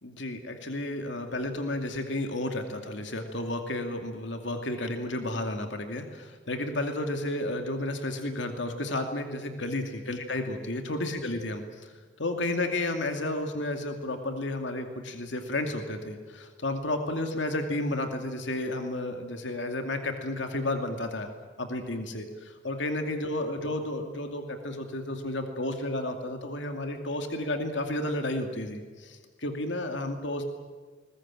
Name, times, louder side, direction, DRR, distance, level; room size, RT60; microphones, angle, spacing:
voice 1, 0.0-11.9 12.2-21.3 21.6-30.4, left 1 dB, 75° left, 5 dB, 2.5 m, -32 dB
21.5 x 21.0 x 9.0 m, 1.5 s
head